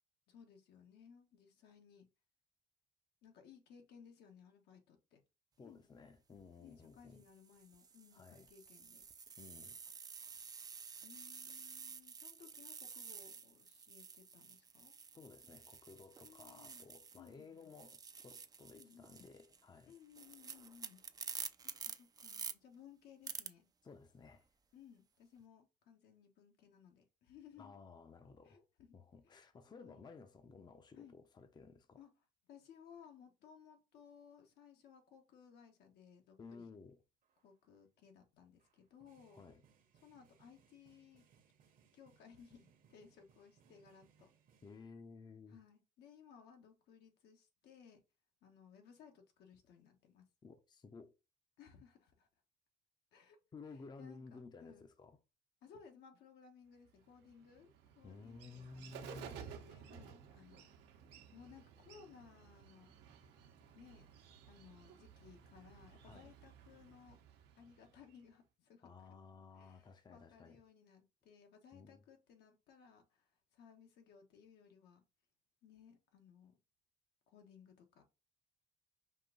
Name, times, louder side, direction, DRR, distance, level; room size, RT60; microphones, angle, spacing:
voice 1, 0.3-2.1 3.2-5.2 5.6-5.8 6.6-9.0 11.0-14.9 16.2-16.8 17.1-17.7 18.7-19.3 19.8-21.0 21.6-23.7 24.7-27.7 28.4-28.9 29.2-29.4 29.8-30.1 30.9-31.2 32.0-32.1 32.5-36.7 37.4-39.4 40.0-41.3 41.9-44.3 45.5-48.0 48.4-50.2 51.6-52.3 53.1-53.4 54.0-54.8 55.6-57.7 57.9-60.7 61.3-62.9 63.7-64.1 64.4-67.2 67.6-69.1 69.5-75.0 75.6-76.6 77.3-78.0, left 7 dB, 75° left, 1.2 m, -61 dB
voice 2, 5.6-7.3 8.1-8.5 9.4-9.8 15.2-20.0 23.8-24.5 27.6-28.6 28.9-32.0 36.4-37.0 39.3-39.6 44.6-45.6 50.4-51.1 53.5-55.2 58.0-59.4 66.0-66.3 68.8-70.6 71.7-72.0, left 4 dB, 25° left, 0.6 m, -55 dB
sound 1, 6.2-6.4 7.2-17.3 17.6-22.5 23.3-23.5, right 5 dB, 20° right, 0.4 m, -50 dB
sound 2, 37.2-37.5 38.6-44.8, right 7 dB, 55° right, 1.0 m, -71 dB
Bird, 56.8-68.3, right 7 dB, 80° right, 1.0 m, -56 dB
5.4 x 2.6 x 3.8 m
cardioid pair, 110°, 17 cm